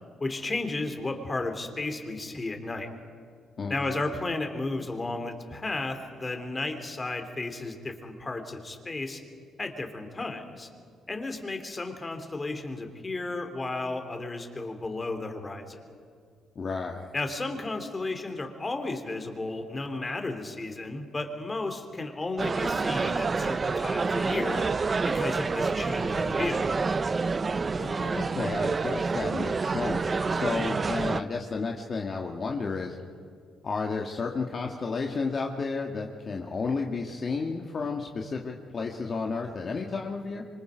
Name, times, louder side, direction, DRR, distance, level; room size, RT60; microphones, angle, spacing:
voice 1, 0.2-2.9 3.7-9.2 9.6-10.7 11.1-15.8 17.1-24.7 25.0-26.7, left 2 dB, 25° left, 6 dB, 3.2 m, -33 dB
voice 2, 3.6-4.0 16.6-17.1 27.8-33.0 33.6-40.4, left 4 dB, 45° left, 1 dB, 1.9 m, -32 dB
Busy bar ambient sound, 22.4-31.2, right 4 dB, 35° right, 0.6 m, -28 dB
27.0 x 25.0 x 5.2 m, 2.2 s
cardioid pair, 90°, 0 cm